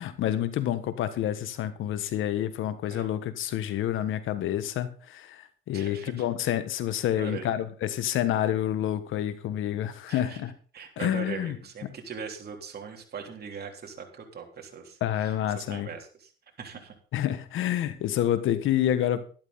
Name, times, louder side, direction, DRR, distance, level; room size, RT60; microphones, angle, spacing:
voice 1, 0.0-10.5 11.0-11.6 11.8-11.9 15.0-15.9 17.1-19.2, left 11 dB, 85° left, 12 dB, 1.5 m, -28 dB
voice 2, 5.7-6.2 7.2-7.5 10.1-10.4 10.7-16.3 16.6-16.9, right 6 dB, 55° right, 2 dB, 3.4 m, -40 dB
12.0 x 12.0 x 4.1 m, 0.40 s
cardioid pair, 90°, 20 cm